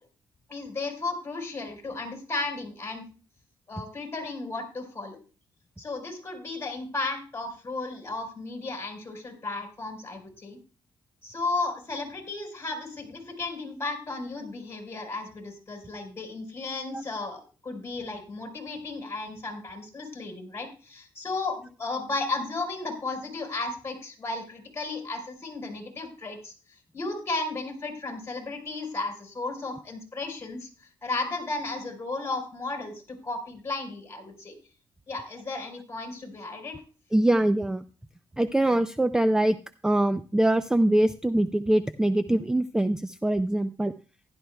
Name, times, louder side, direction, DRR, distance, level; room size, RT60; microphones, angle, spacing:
voice 1, 0.5-3.1 3.7-5.2 5.8-10.6 11.2-26.5 26.9-30.7 31.0-34.5 35.1-36.8, left 3 dB, 25° left, 3 dB, 4.3 m, -34 dB
voice 2, 37.1-37.8 38.4-39.6 39.8-43.9, right 1 dB, 5° right, 12 dB, 0.4 m, -23 dB
15.5 x 11.5 x 2.2 m, 0.35 s
cardioid pair, 110°, 9 cm